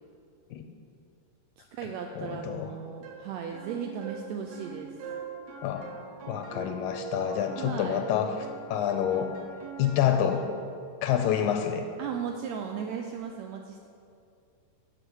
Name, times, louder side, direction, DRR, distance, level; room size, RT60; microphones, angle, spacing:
voice 1, 1.6-5.0 7.6-8.0 12.0-13.9, right 7 dB, 85° right, 3 dB, 1.6 m, -36 dB
voice 2, 2.2-2.7 5.6-5.9 6.3-9.3 9.8-10.5 11.0-11.9, left 9 dB, 80° left, 6 dB, 1.8 m, -28 dB
sound 1, 3.0-10.7, right 4 dB, 65° right, 1.9 m, -42 dB
10.0 x 5.9 x 6.2 m, 2.5 s
omnidirectional pair, 3.8 m